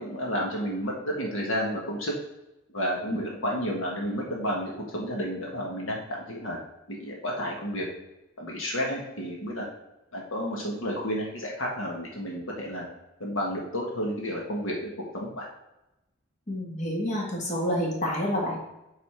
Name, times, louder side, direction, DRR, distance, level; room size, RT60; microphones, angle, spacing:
voice 1, 0.0-2.1 2.7-6.6 6.9-7.8 8.4-9.7 10.1-12.9 13.2-15.5, equal, 70° left, -1 dB, 1.6 m, -31 dB
voice 2, 16.5-18.6, equal, 35° left, -3 dB, 1.9 m, -28 dB
7.5 x 4.1 x 4.9 m, 0.92 s
head